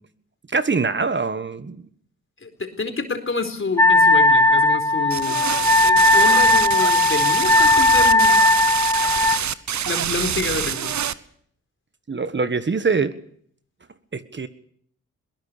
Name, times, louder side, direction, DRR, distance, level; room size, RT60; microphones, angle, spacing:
voice 1, 0.5-1.8 12.1-13.1 14.1-14.5, right 4 dB, 35° right, 12 dB, 1.5 m, -23 dB
voice 2, 2.4-5.4 5.8-8.5 9.8-10.9, left 3 dB, 40° left, 6 dB, 4.2 m, -28 dB
Wind instrument woodwind instrument, 3.8-9.4, left 2 dB, 10° left, 2.0 m, -17 dB
sound 1, 5.1-11.1, right 9 dB, 60° right, 1.0 m, -25 dB
21.5 x 18.0 x 6.9 m, 0.63 s
supercardioid pair, 55°, 33 cm